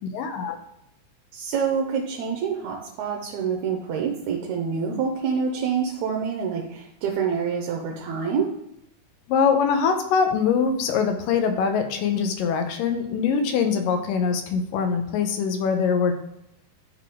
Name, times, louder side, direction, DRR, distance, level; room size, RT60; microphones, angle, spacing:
voice 1, 0.1-0.6 9.3-16.1, left 6 dB, 85° left, 6 dB, 2.5 m, -23 dB
voice 2, 1.3-8.5, right 6 dB, 70° right, 1 dB, 1.9 m, -27 dB
10.5 x 4.1 x 3.6 m, 0.81 s
omnidirectional pair, 3.8 m